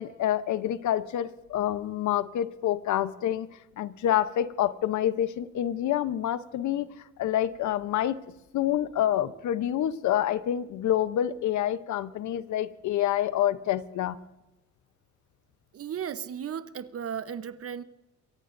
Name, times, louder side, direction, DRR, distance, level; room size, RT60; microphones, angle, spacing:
voice 1, 0.0-3.5 3.8-6.9 7.2-8.2 8.5-14.2, left 11 dB, 75° left, 0.8 m, -27 dB
voice 2, 15.7-17.8, right 8 dB, 50° right, 0.9 m, -35 dB
23.0 x 17.5 x 2.6 m
cardioid pair, 90°, 30 cm